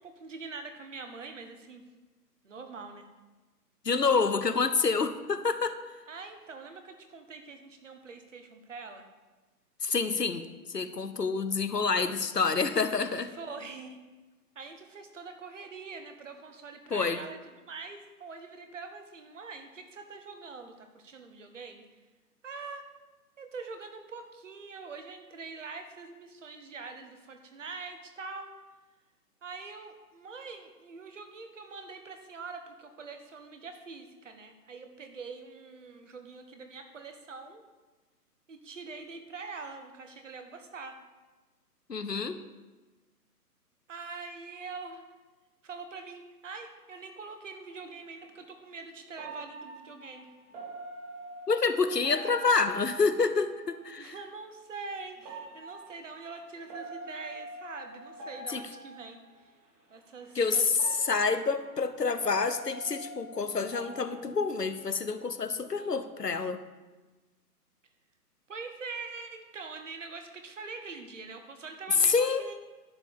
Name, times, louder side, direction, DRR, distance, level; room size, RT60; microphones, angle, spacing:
voice 1, 0.0-1.8 2.4-3.1 6.1-9.1 13.1-14.0 14.5-21.8 22.4-22.9 23.4-28.5 29.4-37.6 38.5-41.0 43.9-45.0 45.6-50.3 54.0-59.2 59.9-60.7 68.5-72.5, right 4 dB, 50° right, 6 dB, 1.6 m, -44 dB
voice 2, 3.8-5.8 9.8-13.3 16.9-17.2 41.9-42.4 51.5-54.1 58.5-58.6 60.3-66.6 72.0-72.5, left 4 dB, 80° left, 10 dB, 1.1 m, -28 dB
sound 1, 47.7-47.8 49.2-53.9 55.2-59.4 60.2-60.3 60.8-65.2 65.5-65.8, right 2 dB, 20° right, 1.9 m, -45 dB
11.5 x 5.4 x 8.5 m, 1.2 s
figure-of-eight pair, 135°, 47 cm